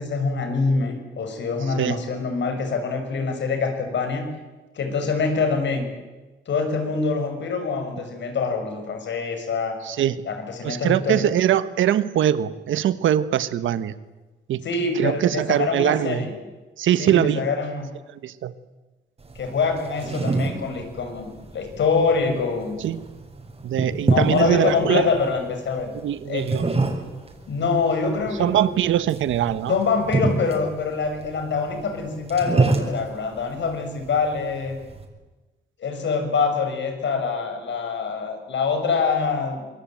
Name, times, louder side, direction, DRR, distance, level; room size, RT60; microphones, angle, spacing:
voice 1, 0.0-4.3 4.7-5.9 6.5-9.8 10.2-11.4 14.6-16.3 17.0-17.9 19.3-22.8 24.0-25.9 26.2-26.5 27.5-28.6 29.7-34.8 35.8-39.7, left 4 dB, 70° left, 6 dB, 6.7 m, -25 dB
voice 2, 9.8-10.2 10.6-13.9 14.5-14.6 14.9-16.3 16.8-17.5 18.1-18.6 22.8-23.0 23.6-25.1 26.0-26.7 28.4-29.8, right 11 dB, 90° right, 14 dB, 1.4 m, -22 dB
sound 1, 19.2-35.0, right 3 dB, 30° right, 6.5 m, -28 dB
26.0 x 22.5 x 9.2 m, 1.2 s
cardioid pair, 85°, 20 cm